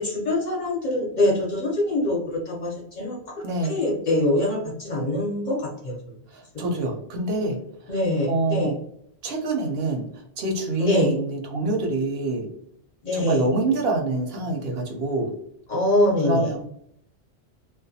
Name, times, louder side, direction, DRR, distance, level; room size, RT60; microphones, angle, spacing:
voice 1, 0.0-2.2 2.5-3.2 3.7-6.0 7.9-8.7 10.8-11.1 13.0-13.4 15.7-16.5, left 1 dB, 50° left, -2 dB, 0.7 m, -24 dB
voice 2, 3.4-3.8 6.3-7.6 8.3-8.7 9.2-10.0 10.4-12.5 13.1-15.3 16.2-16.6, right 2 dB, 70° right, 2 dB, 0.8 m, -25 dB
2.3 x 2.2 x 2.6 m, 0.70 s
omnidirectional pair, 1.1 m